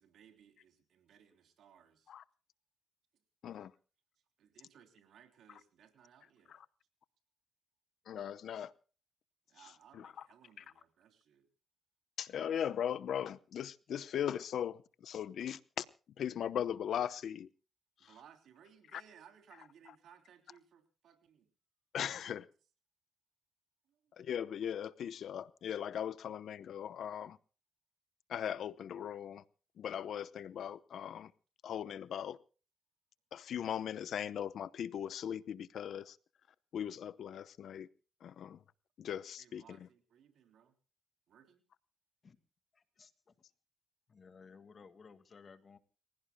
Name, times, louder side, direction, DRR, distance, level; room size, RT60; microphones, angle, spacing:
voice 1, 0.0-2.1 3.1-3.2 3.6-3.7 4.4-6.6 9.5-11.5 18.0-21.5 22.0-22.4 23.8-24.1 39.0-40.7 41.3-41.6, right 8 dB, 70° right, 3.3 m, -62 dB
voice 2, 8.1-8.7 9.9-10.1 10.6-10.7 12.2-15.9 16.2-17.5 18.9-19.0 21.9-22.4 24.1-27.4 28.3-29.4 29.8-31.3 31.6-32.4 33.3-36.2 36.7-37.9 38.2-38.6 39.0-39.8, left 9 dB, 65° left, 0.8 m, -39 dB
voice 3, 42.7-43.3 44.1-45.8, left 5 dB, 40° left, 1.9 m, -57 dB
30.0 x 17.0 x 2.2 m
cardioid pair, 90°, 0 cm